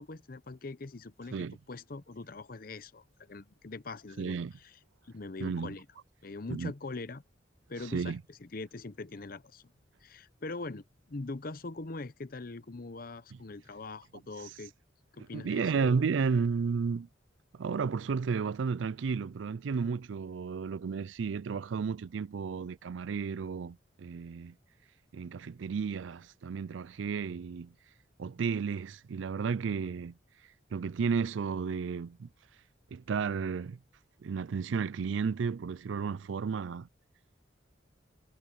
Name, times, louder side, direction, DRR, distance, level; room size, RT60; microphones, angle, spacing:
voice 1, 0.0-4.4 4.6-4.7 5.0-5.9 6.2-7.2 7.7-9.6 10.0-14.7 15.1-16.0 16.3-16.4, left 3 dB, 50° left, 0.8 m, -42 dB
voice 2, 4.2-4.5 5.4-5.8 6.5-6.7 7.9-8.2 15.3-17.1 17.5-24.5 25.1-27.7 28.2-30.2 30.7-32.3 32.9-33.8 34.2-36.9, right 5 dB, 80° right, 0.4 m, -33 dB
head